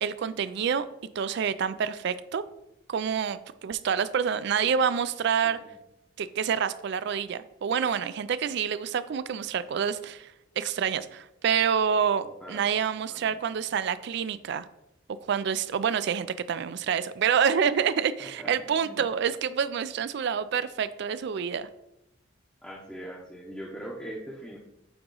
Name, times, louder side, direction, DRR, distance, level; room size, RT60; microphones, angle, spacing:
voice 1, 0.0-0.9 1.2-2.4 2.9-5.6 6.2-14.7 15.2-21.7, right 7 dB, 55° right, 15 dB, 0.3 m, -27 dB
voice 2, 12.2-12.7 13.1-13.4 18.2-19.1 22.6-24.6, equal, 5° left, -4 dB, 0.7 m, -42 dB
8.6 x 3.0 x 3.8 m, 0.87 s
head